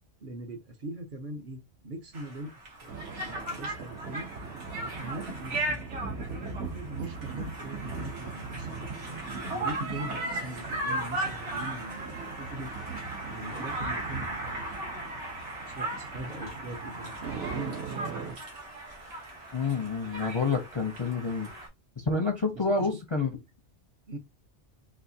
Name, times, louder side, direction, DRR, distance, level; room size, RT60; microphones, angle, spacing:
voice 1, 0.2-2.5 2.8-4.3 4.8-5.9 6.3-12.7 13.2-14.6 15.6-18.3 22.6-23.0 24.1-24.2, right 1 dB, 50° right, 0.8 m, -41 dB
Conversation, 2.1-21.7, right 1 dB, 85° right, 1.6 m, -37 dB
sound 1, 2.9-18.3, right 5 dB, 70° right, 1.1 m, -40 dB
voice 2, 19.5-21.5 22.0-23.3, left 4 dB, 35° left, 0.5 m, -28 dB
4.2 x 2.7 x 2.7 m
omnidirectional pair, 1.2 m